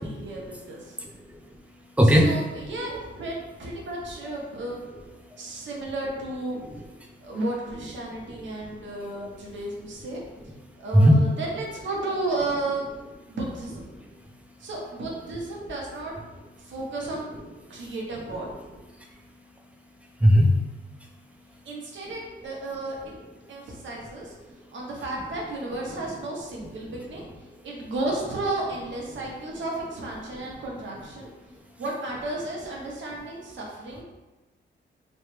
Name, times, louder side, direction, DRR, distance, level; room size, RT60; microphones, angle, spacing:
voice 1, 0.0-1.0 2.0-4.9 5.4-6.6 7.2-10.2 10.8-12.9 13.3-13.8 14.6-16.1 16.6-17.3 17.7-18.5 21.6-23.1 23.5-24.3 24.7-27.2 27.6-31.3 31.8-34.0, right 2 dB, 70° right, -2 dB, 0.8 m, -33 dB
voice 2, 0.9-2.3 5.2-5.7 6.6-7.4 8.3-9.5 10.6-11.2 13.3-13.4 13.9-14.7 16.6-16.7 17.6-17.9 18.9-21.7 23.4-23.8 24.5-24.8 27.4-27.7 31.5-31.8, equal, 5° right, 0 dB, 0.4 m, -25 dB
3.1 x 2.1 x 3.1 m, 1.1 s
cardioid pair, 115°, 20 cm